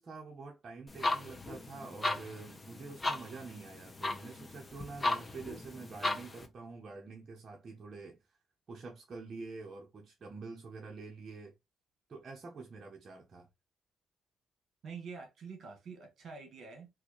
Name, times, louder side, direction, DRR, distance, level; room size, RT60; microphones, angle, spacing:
voice 1, 0.0-8.4 8.7-11.5 12.1-13.5, right 4 dB, 45° right, 0.8 m, -47 dB
sound 1, 0.9-6.5, left 2 dB, 25° left, 0.8 m, -37 dB
voice 2, 14.8-16.9, right 5 dB, 60° right, 1.4 m, -46 dB
3.9 x 2.6 x 3.0 m
cardioid pair, 90°, 0 cm